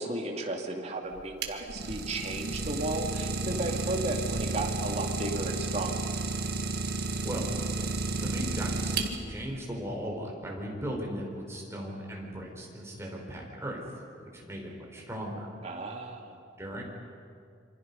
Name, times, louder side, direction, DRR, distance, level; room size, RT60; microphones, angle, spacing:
voice 1, 0.0-6.0 15.6-16.4, right 2 dB, 35° right, 2 dB, 2.5 m, -34 dB
Idling, 1.1-9.5, right 3 dB, 60° right, 1.9 m, -32 dB
voice 2, 8.2-8.9 9.3-13.8 14.2-15.5 16.6-16.8, equal, 15° right, -1 dB, 4.8 m, -37 dB
27.5 x 25.0 x 5.6 m, 2.3 s
head